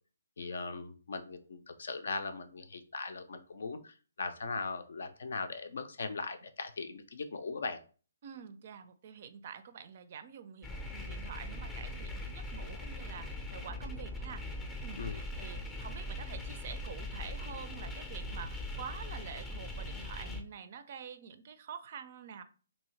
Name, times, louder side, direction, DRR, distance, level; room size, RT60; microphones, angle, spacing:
voice 1, 0.4-7.8 15.0-15.2, left 4 dB, 65° left, 8 dB, 0.5 m, -39 dB
voice 2, 8.2-14.6 14.8-22.4, right 7 dB, 45° right, 10 dB, 0.4 m, -47 dB
sound 1, 10.6-20.4, left 1 dB, 15° left, 0.5 m, -41 dB
2.8 x 2.7 x 3.1 m, 0.38 s
figure-of-eight pair, 135°, 0 cm